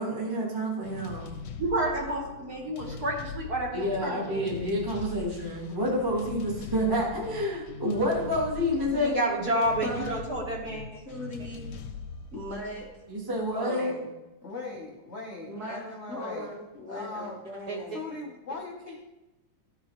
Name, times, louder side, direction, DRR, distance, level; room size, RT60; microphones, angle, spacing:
voice 1, 0.0-1.3 3.7-9.2 13.1-13.9, equal, 15° right, -3 dB, 0.9 m, -28 dB
sound 1, 0.8-13.6, left 4 dB, 70° left, 1.1 m, -42 dB
voice 2, 1.6-4.5 8.9-11.0 17.7-18.0, right 1 dB, 55° right, -2 dB, 1.4 m, -30 dB
voice 3, 9.8-10.1 11.1-11.8 12.3-12.9 13.5-14.2 15.5-18.2, left 1 dB, 40° right, -5 dB, 2.1 m, -39 dB
voice 4, 14.4-16.5 16.9-17.4 17.9-19.0, left 3 dB, 45° left, -3 dB, 0.9 m, -39 dB
12.5 x 4.1 x 3.0 m, 1.0 s
omnidirectional pair, 2.2 m